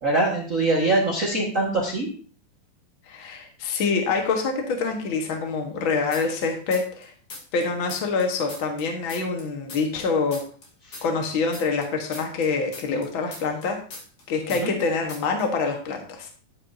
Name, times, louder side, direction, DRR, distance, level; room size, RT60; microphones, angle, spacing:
voice 1, 0.0-2.1 10.9-11.0 14.6-14.7, right 2 dB, 60° right, -2 dB, 0.8 m, -23 dB
voice 2, 3.1-7.1 7.5-10.4 11.0-13.8 14.3-16.3, left 4 dB, 60° left, 3 dB, 1.3 m, -26 dB
sound 1, 6.1-7.0 7.3-10.1 10.3-14.2 14.5-14.8 15.1-15.5, left 2 dB, 40° left, 2.6 m, -40 dB
12.0 x 9.7 x 2.8 m, 0.40 s
omnidirectional pair, 4.3 m